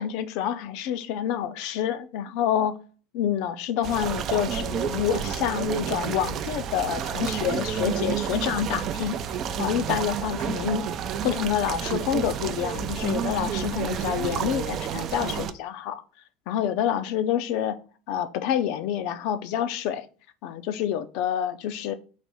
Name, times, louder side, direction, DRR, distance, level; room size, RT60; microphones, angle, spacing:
voice 1, 0.0-2.7 3.1-10.9 11.2-16.0 16.5-17.8 18.1-20.1 20.4-21.9, left 9 dB, 65° left, 0.5 m, -28 dB
sound 1, 3.8-15.5, right 8 dB, 45° right, 0.4 m, -30 dB
4.1 x 2.6 x 4.8 m
supercardioid pair, 115°, 0 cm